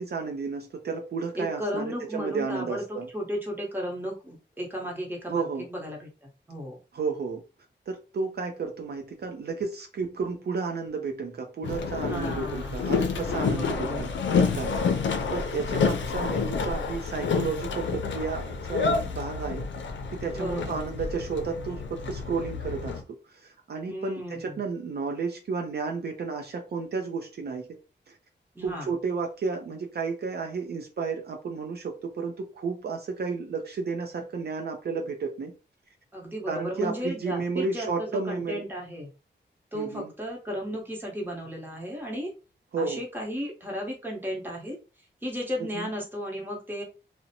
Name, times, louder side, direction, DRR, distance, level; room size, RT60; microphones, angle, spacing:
voice 1, 0.0-3.1 5.3-5.7 6.9-7.4 7.9-14.1 14.5-14.7 15.3-19.6 20.1-23.0 23.3-27.7 28.1-28.2 28.6-35.5 36.5-38.6 39.7-40.1 42.7-43.0 45.6-45.9, right 4 dB, 60° right, 0.4 m, -32 dB
voice 2, 1.3-6.8 12.1-12.8 13.5-14.0 20.3-20.8 23.9-24.6 28.5-29.0 36.1-39.1 39.7-42.3 42.8-44.8 45.2-46.8, equal, 10° right, 0.9 m, -34 dB
Boat Water vehicle, 11.6-23.0, left 5 dB, 85° left, 0.5 m, -29 dB
2.6 x 2.1 x 2.7 m
wide cardioid pair, 105°, 19 cm